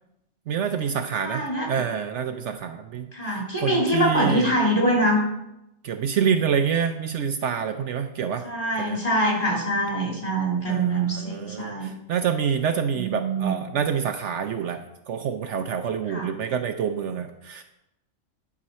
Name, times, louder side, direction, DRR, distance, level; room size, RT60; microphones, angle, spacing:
voice 1, 0.5-4.5 5.8-8.5 8.8-9.0 10.7-17.6, right 7 dB, 70° right, 7 dB, 0.9 m, -27 dB
voice 2, 1.2-1.8 3.1-5.3 8.4-11.9 12.9-13.6 16.1-16.3, right 1 dB, 30° left, -4 dB, 3.5 m, -24 dB
11.0 x 6.2 x 4.2 m, 0.84 s
omnidirectional pair, 1.3 m